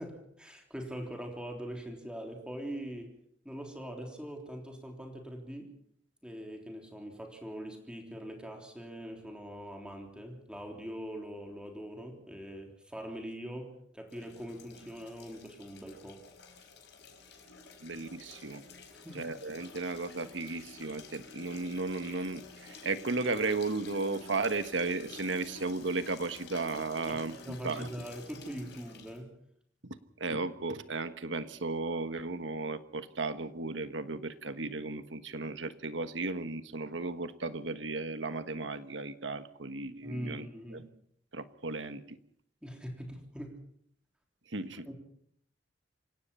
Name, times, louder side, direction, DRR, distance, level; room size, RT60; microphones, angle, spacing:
voice 1, 0.0-3.2 3.4-5.7 6.2-16.2 19.0-19.3 27.1-29.3 40.0-40.9 42.6-43.6 44.9-45.0, equal, 5° right, 2 dB, 3.5 m, -42 dB
sound 1, 14.1-29.2, left 4 dB, 65° left, 4.9 m, -51 dB
voice 2, 17.8-18.6 19.1-27.9 29.8-40.5 40.7-40.8 41.3-42.2 44.5-44.9, right 3 dB, 90° right, 11 dB, 1.4 m, -35 dB
26.5 x 17.5 x 5.6 m, 0.69 s
head